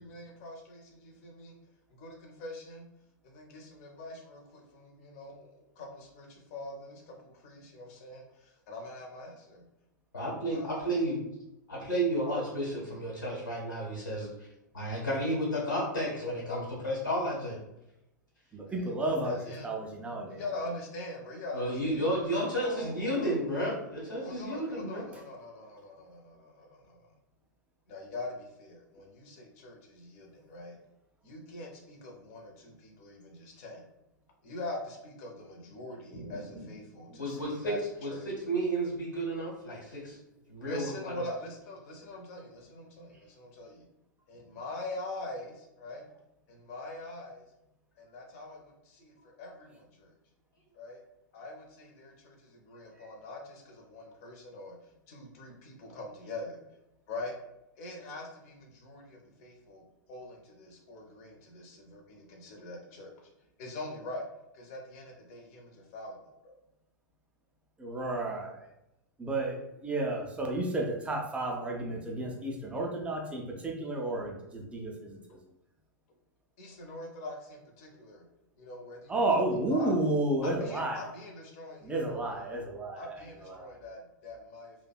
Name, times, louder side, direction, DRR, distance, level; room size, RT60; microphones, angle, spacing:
voice 1, 0.0-1.5 2.0-2.9 3.3-4.4 4.7-5.5 5.8-6.3 6.5-8.2 8.7-9.6 10.5-10.9 18.7-19.7 20.3-21.9 22.6-23.3 24.2-26.8 27.9-30.8 31.2-33.8 34.4-37.8 38.1-38.2 40.6-43.8 44.3-46.0 46.5-47.4 48.1-48.7 49.0-49.1 49.4-49.8 50.8-51.0 51.3-52.3 52.7-54.8 55.1-56.6 57.1-57.3 57.8-59.8 60.1-63.1 63.6-64.2 64.5-66.2 66.4-66.6 76.6-78.2 78.6-79.2 79.7-79.9 80.4-82.4 83.0-84.7, left 2 dB, 50° left, 1 dB, 0.6 m, -43 dB
voice 2, 10.1-11.2 11.7-14.3 14.7-17.6 21.5-25.1 37.2-40.2 40.5-41.2, right 1 dB, 80° left, -4 dB, 1.0 m, -32 dB
voice 3, 18.5-19.3 19.6-20.4 67.8-68.7 69.2-75.2 79.1-81.0 81.8-83.7, right 2 dB, 10° right, 0 dB, 0.4 m, -32 dB
2.6 x 2.1 x 2.3 m, 0.89 s
figure-of-eight pair, 95°, 10 cm